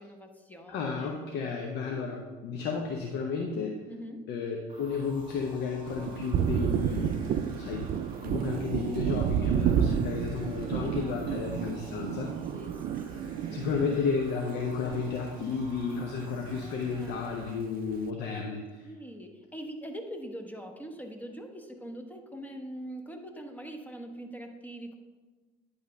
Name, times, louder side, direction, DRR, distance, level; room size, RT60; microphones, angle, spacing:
voice 1, 0.0-1.4 3.9-4.2 10.8-11.2 12.5-13.7 16.5-17.3 18.8-25.0, equal, 10° left, 4 dB, 1.1 m, -43 dB
voice 2, 0.7-3.8 4.3-7.2 7.6-7.9 8.2-12.3 13.5-18.9, left 5 dB, 65° left, 2 dB, 0.9 m, -32 dB
sound 1, 4.7-17.5, right 2 dB, 25° right, 2.2 m, -51 dB
Thunder, 5.9-15.6 15.9-17.1, right 8 dB, 50° right, 0.4 m, -31 dB
10.0 x 3.5 x 5.2 m, 1.3 s
hypercardioid pair, 70°, 19 cm